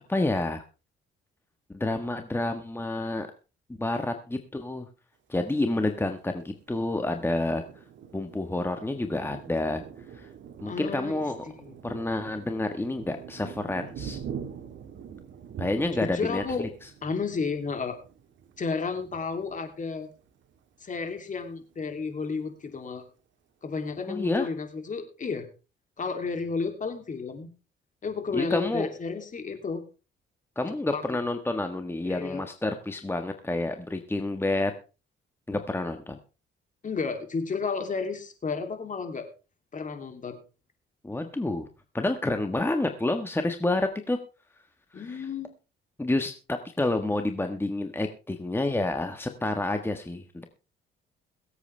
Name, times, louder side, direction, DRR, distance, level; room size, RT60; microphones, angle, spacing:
voice 1, 0.1-0.6 1.7-3.3 3.8-4.9 5.3-7.6 8.1-9.8 10.1-10.3 10.6-11.5 11.8-14.2 15.6-16.9 24.1-24.5 28.3-28.9 30.6-34.7 35.5-36.2 41.0-41.7 41.9-44.2 44.9-45.3 46.0-50.4, left 2 dB, 10° left, 6 dB, 1.4 m, -29 dB
Thunder, 6.3-20.6 21.1-21.2 21.5-22.1, right 7 dB, 70° right, 1.9 m, -44 dB
voice 2, 10.6-11.3 11.6-11.8 16.0-16.7 17.0-18.0 18.6-20.1 20.8-23.0 23.6-25.5 26.0-27.5 28.0-29.8 30.9-31.0 32.0-32.4 36.8-39.3 39.7-40.4 44.9-45.5, left 5 dB, 40° left, 6 dB, 2.9 m, -32 dB
22.0 x 8.3 x 3.4 m, 0.32 s
cardioid pair, 90°, 20 cm